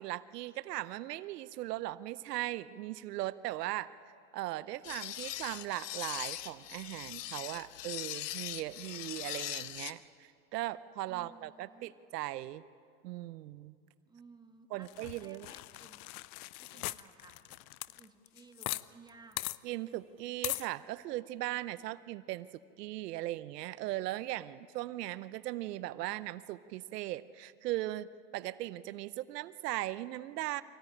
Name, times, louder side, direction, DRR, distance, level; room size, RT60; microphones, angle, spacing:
voice 1, 0.0-3.9 4.3-12.6 13.0-13.7 14.7-15.5 19.6-28.1 28.3-30.6, right 16 dB, 90° right, 16 dB, 0.8 m, -38 dB
sound 1, 4.8-9.9, left 13 dB, 90° left, 1.1 m, -41 dB
voice 2, 11.0-11.9 14.1-16.1 16.6-17.6 17.9-19.4, right 4 dB, 10° right, 4 dB, 1.6 m, -58 dB
sound 2, 14.9-18.8 19.1-19.2 19.4-19.6 20.4-20.7, left 20 dB, 65° left, 0.7 m, -39 dB
24.0 x 16.0 x 10.0 m, 2.4 s
supercardioid pair, 135°, 46 cm